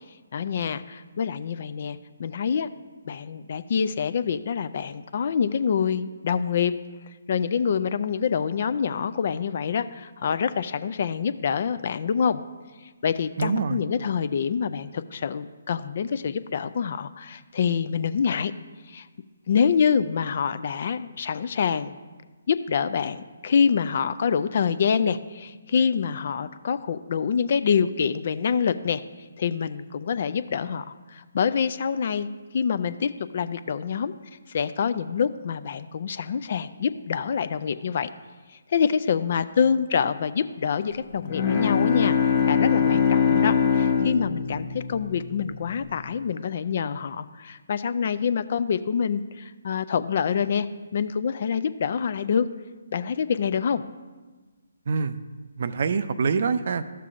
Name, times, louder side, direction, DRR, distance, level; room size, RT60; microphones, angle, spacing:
voice 1, 0.3-2.7 3.0-6.7 7.3-12.4 13.0-18.5 18.9-19.1 19.5-21.9 22.5-29.0 29.4-32.3 32.5-34.1 34.5-38.1 38.7-50.7 50.9-52.5 52.9-53.8, left 6 dB, 50° left, 14 dB, 0.3 m, -26 dB
voice 2, 13.4-13.8 54.9-55.2 55.6-56.8, right 5 dB, 55° right, 13 dB, 0.4 m, -25 dB
Bowed string instrument, 41.2-45.8, left 6 dB, 35° left, 0.7 m, -23 dB
12.5 x 6.7 x 2.5 m, 1.3 s
figure-of-eight pair, 145°, 0 cm